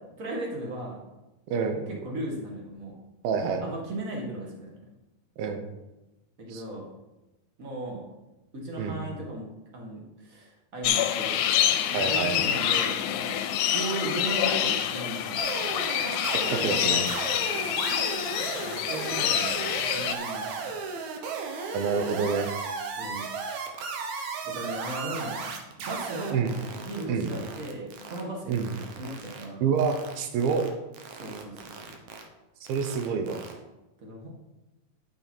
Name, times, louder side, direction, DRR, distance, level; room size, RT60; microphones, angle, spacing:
voice 1, 0.2-1.0 1.7-2.9 3.6-4.7 6.4-6.9 7.6-8.0 8.5-9.5 9.7-11.5 11.9-13.4 13.7-16.1 17.4-17.6 18.6-20.5 23.0-23.2 24.4-25.5 25.8-28.7 29.0-29.7 31.1-31.9 34.0-34.3, right 1 dB, 35° right, -1 dB, 1.4 m, -37 dB
voice 2, 1.5-1.8 3.2-3.7 5.4-5.6 6.5-6.6 8.8-9.0 11.9-12.4 16.3-17.1 21.6-22.5 26.3-26.5 27.1-27.3 28.5-28.7 29.6-30.6 32.7-33.4, right 6 dB, 85° right, 6 dB, 2.8 m, -27 dB
sound 1, 10.8-20.1, left 10 dB, 90° left, 2.5 m, -27 dB
sound 2, 15.4-28.2 28.5-29.4 29.8-30.2 30.4-30.7 30.9-32.2 32.6-33.5, right 5 dB, 65° right, 2.1 m, -35 dB
9.8 x 7.1 x 4.5 m, 1.0 s
omnidirectional pair, 4.1 m